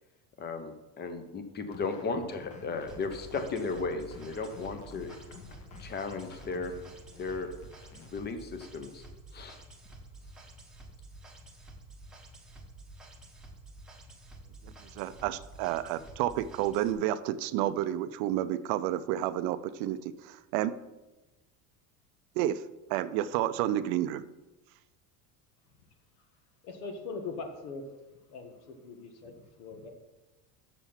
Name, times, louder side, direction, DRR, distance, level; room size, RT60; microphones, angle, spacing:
voice 1, 0.4-5.1 5.8-6.7 7.2-7.5 7.9-9.0 9.3-9.6, left 4 dB, 25° left, 8 dB, 0.9 m, -35 dB
sound 1, 1.7-8.1, left 5 dB, 45° left, 1.2 m, -50 dB
sound 2, 2.9-16.9, right 2 dB, ahead, 1.1 m, -50 dB
voice 2, 14.6-20.7 22.4-22.6 22.9-24.2, right 12 dB, 65° right, 13 dB, 0.6 m, -30 dB
voice 3, 26.6-27.8 28.3-29.9, left 4 dB, 75° left, 5 dB, 1.7 m, -41 dB
7.3 x 6.9 x 5.7 m, 1.0 s
cardioid pair, 140°, 42 cm